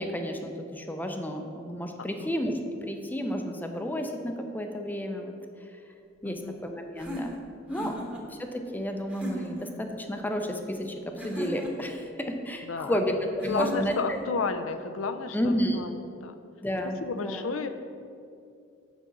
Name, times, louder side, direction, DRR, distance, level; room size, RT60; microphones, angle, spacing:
voice 1, 0.0-2.5 2.8-5.3 6.2-7.3 7.7-7.9 8.3-10.9 11.2-13.2 13.4-14.2 15.3-15.9 16.6-17.4, equal, 10° left, 4 dB, 0.5 m, -31 dB
voice 2, 6.2-6.6 7.9-8.0 12.6-13.0 13.5-16.3 17.0-17.7, left 4 dB, 90° left, 8 dB, 0.6 m, -32 dB
sound 1, 7.0-8.2 9.1-9.7 11.2-11.9 13.4-14.2, equal, 5° right, 1.1 m, -37 dB
6.2 x 5.2 x 6.8 m, 2.5 s
head